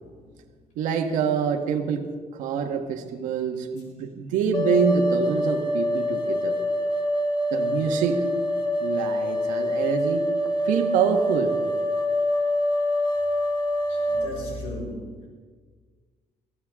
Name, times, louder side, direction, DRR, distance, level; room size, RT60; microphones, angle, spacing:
voice 1, 0.7-2.1 2.3-6.6 7.5-8.3 8.8-10.3 10.6-11.6, right 6 dB, 90° right, 4 dB, 1.6 m, -26 dB
sound 1, 4.5-14.3, left 1 dB, 40° left, 1.5 m, -25 dB
voice 2, 13.9-15.3, left 1 dB, 80° left, -2 dB, 6.0 m, -36 dB
24.0 x 15.0 x 3.8 m, 1.5 s
cardioid pair, 160°, 13 cm